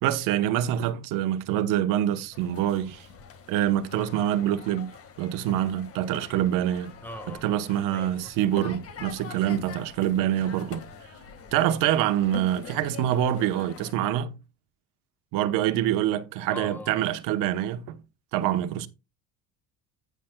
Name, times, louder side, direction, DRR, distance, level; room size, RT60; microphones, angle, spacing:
voice 1, 0.0-3.1 3.5-4.9 5.2-6.9 7.4-10.9 11.5-14.3 15.3-18.0 18.3-18.9, right 11 dB, 75° right, 1.0 m, -25 dB
sound 1, 2.3-13.9, left 6 dB, 45° left, 1.7 m, -43 dB
voice 2, 7.0-7.4 7.9-8.3 16.5-16.9, left 1 dB, 5° left, 1.0 m, -40 dB
10.0 x 9.2 x 2.2 m
cardioid pair, 155°, 33 cm